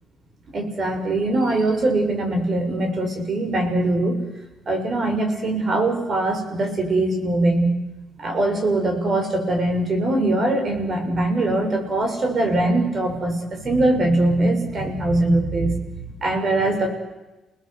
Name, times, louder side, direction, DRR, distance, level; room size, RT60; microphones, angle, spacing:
voice 1, 0.5-4.2 4.7-7.7 8.2-16.9, right 2 dB, 45° right, 4 dB, 6.7 m, -22 dB
29.5 x 19.5 x 8.2 m, 1.1 s
cardioid pair, 90°, 0 cm